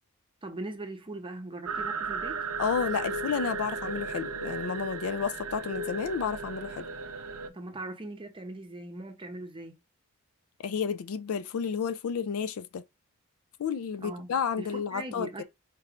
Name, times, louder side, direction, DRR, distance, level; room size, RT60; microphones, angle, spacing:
voice 1, 0.4-2.5 7.5-9.8 14.0-14.3 14.6-15.4, right 2 dB, 25° right, 0.7 m, -40 dB
sound 1, 1.7-7.5, right 4 dB, 85° right, 0.5 m, -35 dB
voice 2, 2.6-6.9 10.6-12.8 13.6-15.4, left 6 dB, 70° left, 0.4 m, -31 dB
4.5 x 3.1 x 2.4 m
head